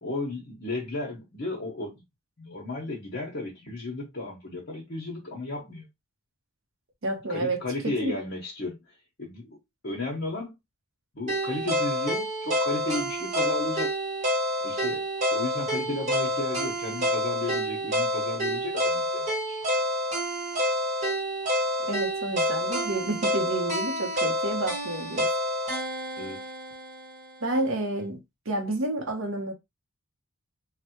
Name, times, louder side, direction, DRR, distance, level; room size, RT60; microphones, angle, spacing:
voice 1, 0.0-2.0 2.4-5.9 7.3-9.6 9.8-10.5 11.1-13.9 14.6-19.6 26.2-26.5, left 2 dB, 50° left, 0.9 m, -34 dB
voice 2, 7.0-8.1 21.8-25.3 27.4-28.2 28.5-29.5, right 2 dB, 60° right, 0.7 m, -30 dB
sound 1, 11.3-27.4, equal, 30° right, 1.0 m, -28 dB
3.3 x 2.1 x 2.9 m
head